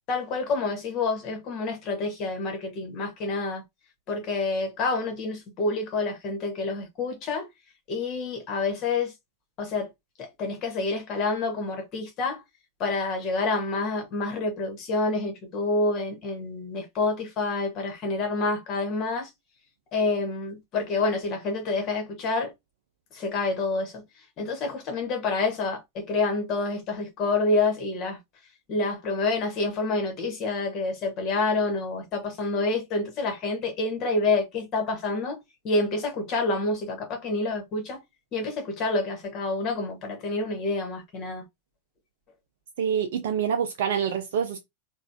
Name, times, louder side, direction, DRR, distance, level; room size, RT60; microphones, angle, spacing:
voice 1, 0.1-3.6 4.1-7.5 7.9-9.1 9.6-9.9 10.2-12.4 12.8-19.3 19.9-22.5 23.1-24.0 24.4-28.2 28.7-38.0 38.3-41.4, left 3 dB, 35° left, 1.5 m, -28 dB
voice 2, 42.8-44.6, right 8 dB, 55° right, 0.5 m, -26 dB
3.9 x 2.5 x 2.8 m
figure-of-eight pair, 90°, 0 cm